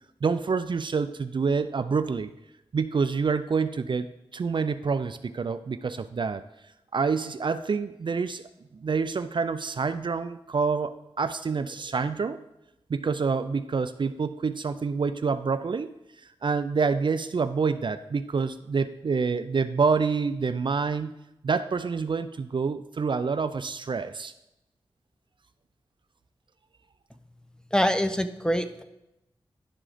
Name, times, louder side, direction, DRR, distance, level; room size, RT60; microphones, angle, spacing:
voice 1, 0.2-2.3 2.7-6.4 6.9-8.4 8.7-12.4 12.9-15.9 16.4-21.1 21.4-24.3, right 5 dB, 55° right, 12 dB, 0.4 m, -27 dB
voice 2, 27.7-28.8, equal, 5° left, 10 dB, 0.6 m, -25 dB
11.0 x 3.7 x 4.9 m, 0.88 s
cardioid pair, 50°, 10 cm